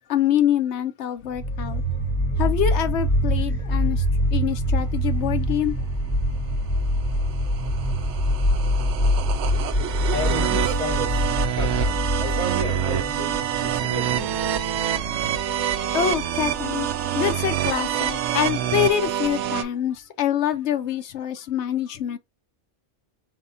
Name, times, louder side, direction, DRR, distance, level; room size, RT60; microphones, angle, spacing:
voice 1, 0.1-1.8 2.4-4.0 4.3-5.7 15.9-16.9 17.1-22.2, left 10 dB, 80° left, 0.9 m, -25 dB
sound 1, 1.3-18.4, equal, 25° left, 0.9 m, -25 dB
sound 2, 6.6-19.6, right 10 dB, 85° right, 0.9 m, -27 dB
voice 2, 10.1-11.2 11.5-14.4, equal, 30° right, 0.9 m, -32 dB
4.9 x 3.6 x 2.6 m
omnidirectional pair, 1.2 m